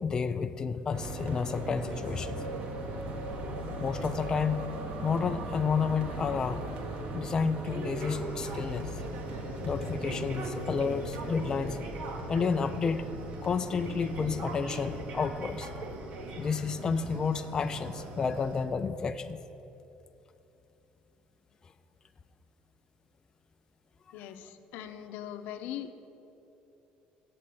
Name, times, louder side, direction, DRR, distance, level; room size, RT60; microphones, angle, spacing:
voice 1, 0.0-2.4 3.8-4.7 5.0-6.7 7.1-8.9 9.6-11.8 12.3-13.0 13.4-15.7 16.4-19.4, left 5 dB, 25° left, 9 dB, 0.3 m, -30 dB
sound 1, 0.9-18.7, right 1 dB, 50° right, 1.2 m, -38 dB
voice 2, 24.1-25.9, left 10 dB, 85° left, 8 dB, 0.6 m, -40 dB
7.5 x 7.5 x 8.5 m, 2.9 s
cardioid pair, 165°, 3 cm